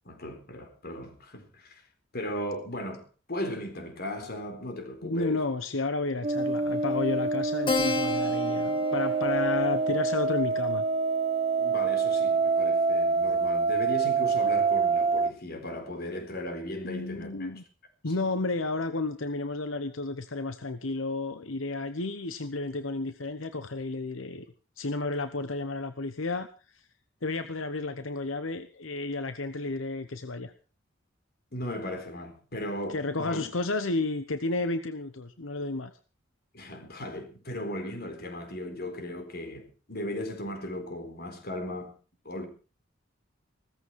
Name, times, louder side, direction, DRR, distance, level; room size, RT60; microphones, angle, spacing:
voice 1, 0.0-1.8 2.1-5.4 11.6-17.5 18.1-18.2 31.5-33.4 36.5-41.9 42.2-42.5, left 1 dB, 55° left, 4.2 m, -37 dB
voice 2, 5.0-10.8 16.8-17.6 18.0-24.5 24.8-26.9 27.2-30.5 32.9-35.9, left 3 dB, 90° left, 1.1 m, -32 dB
sound 1, 6.2-15.3, right 4 dB, 30° right, 1.1 m, -26 dB
Keyboard (musical), 7.7-12.6, left 3 dB, 25° left, 2.4 m, -35 dB
16.5 x 14.5 x 4.7 m
head